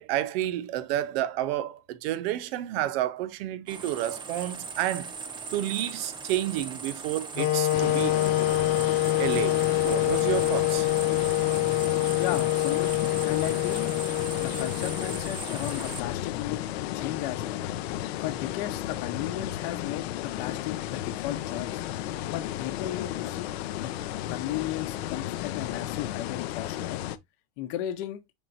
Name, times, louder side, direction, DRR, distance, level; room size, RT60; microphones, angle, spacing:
voice 1, 0.0-5.1 5.5-8.2 9.2-10.9, right 13 dB, 70° right, 0.7 m, -30 dB
sound 1, 3.7-16.0, right 5 dB, 15° right, 0.6 m, -39 dB
sound 2, 7.4-15.4, left 16 dB, 30° left, 0.4 m, -26 dB
sound 3, 7.7-27.2, left 13 dB, 90° left, 0.6 m, -34 dB
voice 2, 12.2-13.9 14.4-16.6 16.9-17.6 18.2-21.8 22.3-23.5 23.8-23.9 24.3-27.0 27.6-28.2, left 13 dB, 60° left, 0.9 m, -35 dB
4.6 x 4.5 x 2.5 m
supercardioid pair, 145°, 31 cm